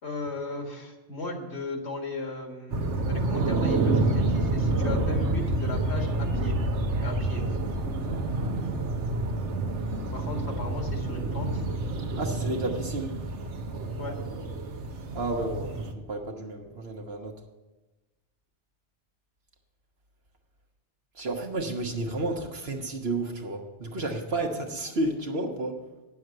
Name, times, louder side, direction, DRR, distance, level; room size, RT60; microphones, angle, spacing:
voice 1, 0.0-6.6 7.0-7.5 10.1-11.6 14.0-14.2, left 2 dB, 70° left, 2 dB, 2.0 m, -36 dB
sound 1, 2.7-15.9, right 2 dB, 80° right, 1.3 m, -28 dB
voice 2, 12.2-13.1 15.1-17.3 21.1-25.8, right 2 dB, 60° right, 2 dB, 1.4 m, -31 dB
9.4 x 7.1 x 7.6 m, 1.1 s
omnidirectional pair, 1.2 m